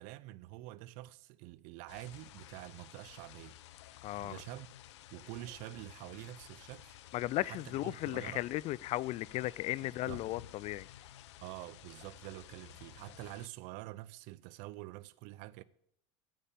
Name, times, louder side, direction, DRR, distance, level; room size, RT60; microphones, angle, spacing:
voice 1, 0.0-3.6 4.2-4.7 5.1-7.0 7.4-8.4 10.1-10.3 11.4-15.6, right 17 dB, 60° right, 0.6 m, -47 dB
sound 1, 1.9-13.5, left 13 dB, 80° left, 0.7 m, -54 dB
voice 2, 4.0-4.4 7.1-10.9, left 17 dB, 50° left, 0.4 m, -36 dB
9.1 x 8.8 x 8.8 m
hypercardioid pair, 90°, 15 cm